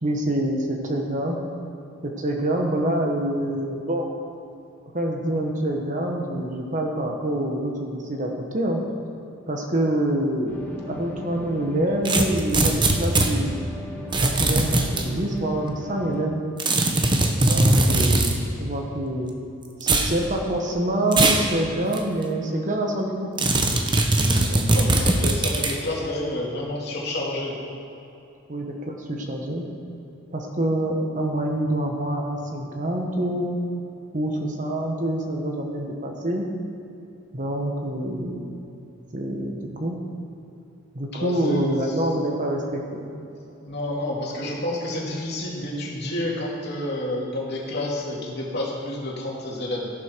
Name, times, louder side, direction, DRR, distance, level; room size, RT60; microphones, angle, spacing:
voice 1, 0.0-1.4 2.0-4.1 4.9-8.8 9.5-10.6 10.8-13.6 14.2-16.4 17.4-19.3 19.8-23.3 24.5-25.1 28.5-29.6 30.3-33.6 34.1-36.5 37.3-38.5 39.1-40.0 40.9-43.1, right 1 dB, 40° right, 1 dB, 1.4 m, -26 dB
sound 1, 10.5-16.3, equal, 10° left, 1.5 m, -38 dB
sound 2, 12.1-13.3 14.1-15.1 16.6-18.4 19.8-20.1 21.1-21.5 21.9-22.0 23.4-25.8, right 2 dB, 25° right, 0.9 m, -20 dB
voice 2, 24.7-27.6 41.1-42.0 43.6-49.9, left 1 dB, 55° left, -3 dB, 2.8 m, -29 dB
13.5 x 11.5 x 4.7 m, 2.9 s
head